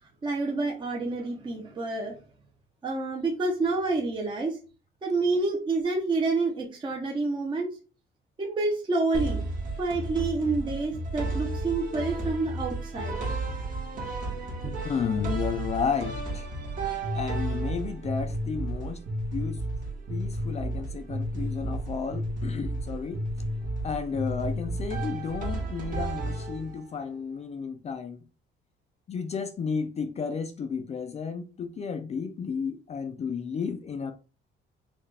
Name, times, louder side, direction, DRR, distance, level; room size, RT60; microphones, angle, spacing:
voice 1, 0.2-2.2 2.8-4.6 5.0-7.7 8.4-9.4 9.8-13.2 14.6-14.8, right 3 dB, 25° right, 0.8 m, -28 dB
sound 1, 9.1-27.0, right 1 dB, 45° right, 1.5 m, -32 dB
voice 2, 14.8-16.5 17.1-19.0 19.3-19.6 20.1-23.2 23.8-28.2 29.1-34.1, left 6 dB, 35° left, 0.4 m, -32 dB
5.6 x 2.5 x 3.3 m
cardioid pair, 150°, 20 cm